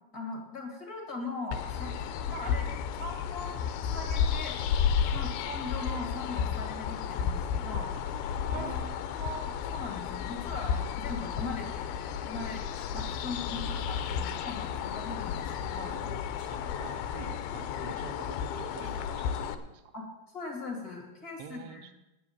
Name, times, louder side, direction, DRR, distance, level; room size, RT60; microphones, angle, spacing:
voice 1, 0.1-2.7 3.0-4.6 5.1-8.1 8.5-8.7 9.1-12.0 12.3-12.6 12.9-16.0 19.9-21.9, left 3 dB, 30° left, 1 dB, 1.9 m, -40 dB
sound 1, 1.5-19.5, left 7 dB, 85° left, 2.3 m, -33 dB
voice 2, 8.5-9.0 12.9-13.0 13.4-14.5 16.5-19.8 21.4-21.9, right 9 dB, 75° right, 8 dB, 2.2 m, -46 dB
sound 2, 12.6-14.0 14.6-14.9 15.2-17.5 18.0-18.4 18.8-19.5, left 3 dB, 55° left, 1.1 m, -56 dB
9.6 x 7.7 x 8.7 m, 0.99 s
omnidirectional pair, 4.8 m